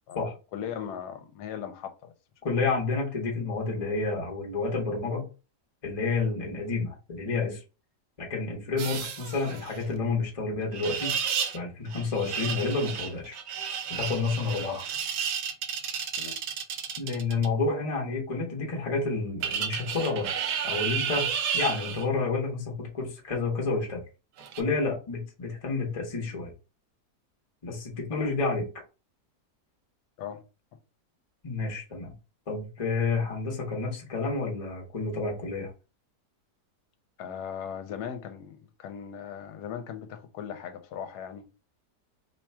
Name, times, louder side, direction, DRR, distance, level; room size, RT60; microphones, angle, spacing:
voice 1, 0.1-2.1 16.2-16.4 28.1-28.4 30.2-30.4 37.2-41.5, left 8 dB, 75° left, 1.2 m, -38 dB
voice 2, 2.4-5.3 5.8-7.6 8.2-11.1 11.5-13.3 13.9-14.8 17.0-20.3 20.6-21.3 21.5-24.0 24.6-26.5 27.6-28.6 31.4-32.1 32.5-35.7, left 3 dB, 25° left, 0.8 m, -29 dB
aerial ropeslide, 8.8-9.8 10.7-11.6 11.9-17.5 19.4-22.1 24.4-24.6, right 7 dB, 80° right, 1.2 m, -32 dB
3.0 x 2.3 x 4.2 m
omnidirectional pair, 1.8 m